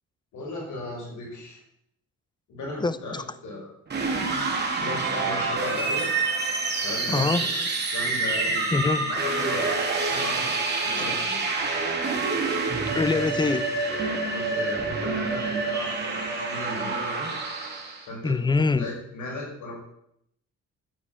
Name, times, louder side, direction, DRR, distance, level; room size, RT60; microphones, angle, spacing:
voice 1, 0.3-1.6 2.5-3.7 4.8-6.0 6.8-7.6 7.9-8.7 8.9-9.8 10.1-11.4 14.3-17.3 18.1-18.3 18.8-19.8, left 2 dB, 75° left, -2 dB, 5.7 m, -36 dB
voice 2, 2.8-3.2 7.1-7.5 8.7-9.1 10.9-11.3 12.9-13.7 18.2-18.9, left 3 dB, 15° left, 15 dB, 0.8 m, -25 dB
sound 1, 3.9-18.0, right 3 dB, 35° right, 3.5 m, -27 dB
12.5 x 8.2 x 7.1 m, 0.74 s
cardioid pair, 90°, 30 cm